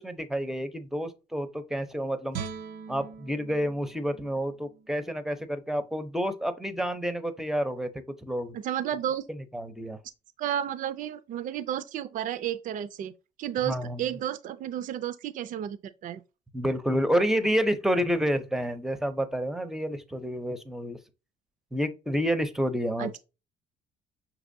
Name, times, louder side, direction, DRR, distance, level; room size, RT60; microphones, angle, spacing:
voice 1, 0.0-2.4 2.9-8.5 9.5-10.0 13.6-14.0 16.5-21.0 21.7-23.2, equal, ahead, 0.6 m, -29 dB
Guitar, 2.3-5.5 5.9-6.0, right 6 dB, 85° right, 0.7 m, -42 dB
voice 2, 8.5-9.2 10.4-13.1 13.4-15.8 16.0-16.2 23.0-23.2, right 10 dB, 50° right, 0.4 m, -32 dB
6.0 x 2.9 x 2.6 m
cardioid pair, 110°, 17 cm